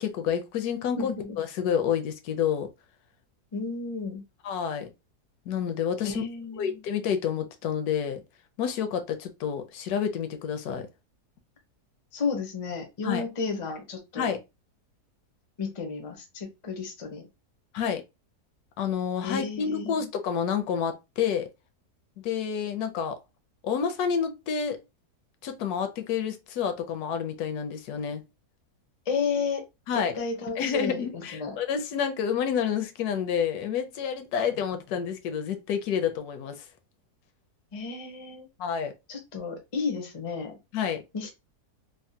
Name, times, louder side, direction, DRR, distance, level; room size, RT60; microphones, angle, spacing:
voice 1, 0.0-2.7 4.4-4.9 5.5-6.2 6.6-8.2 8.6-10.9 13.0-13.2 14.2-14.4 17.7-18.0 18.8-21.5 22.2-23.2 23.6-24.8 25.4-28.2 29.9-30.2 30.6-36.6 38.6-38.9 40.7-41.0, left 7 dB, 75° left, 1.0 m, -29 dB
voice 2, 1.0-1.4 3.5-4.2 6.0-6.8 12.1-14.3 15.6-17.3 19.2-20.0 29.1-29.6 29.9-31.6 37.7-38.5 39.1-40.6 41.1-41.3, left 5 dB, 55° left, 0.3 m, -32 dB
3.4 x 2.1 x 2.6 m
omnidirectional pair, 1.7 m